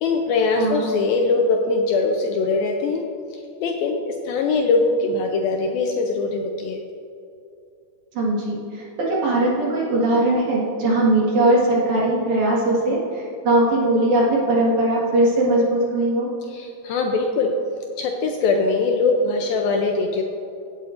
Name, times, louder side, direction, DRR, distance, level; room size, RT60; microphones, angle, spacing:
voice 1, 0.0-3.0 3.3-6.8 16.5-17.5 18.0-20.2, left 3 dB, 80° left, 2 dB, 2.2 m, -22 dB
voice 2, 0.6-0.9 8.1-16.3, right 1 dB, 55° right, -5 dB, 2.7 m, -20 dB
16.5 x 8.3 x 2.5 m, 2.7 s
omnidirectional pair, 4.7 m